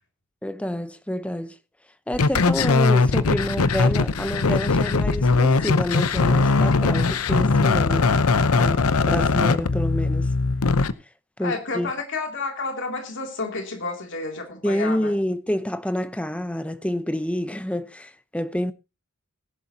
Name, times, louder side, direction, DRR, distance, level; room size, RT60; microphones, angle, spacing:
voice 1, 0.4-1.6 2.1-8.1 8.5-10.3 11.4-11.9 14.6-18.7, left 1 dB, 5° left, 0.8 m, -28 dB
sound 1, 2.1-10.9, left 3 dB, 90° left, 0.8 m, -20 dB
voice 2, 11.4-15.2, left 3 dB, 60° left, 2.6 m, -31 dB
19.5 x 11.5 x 2.8 m
head